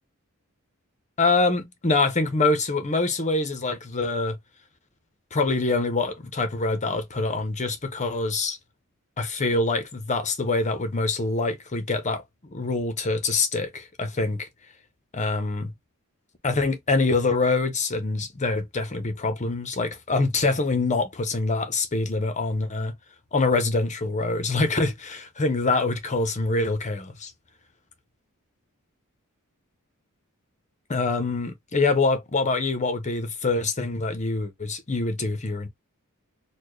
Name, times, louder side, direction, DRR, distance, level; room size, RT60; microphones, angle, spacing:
voice 1, 1.2-4.4 5.3-8.6 9.2-12.2 12.5-14.5 15.1-15.7 16.4-22.9 23.3-27.3 30.9-35.7, left 3 dB, 35° left, 0.9 m, -25 dB
4.3 x 2.3 x 3.2 m
head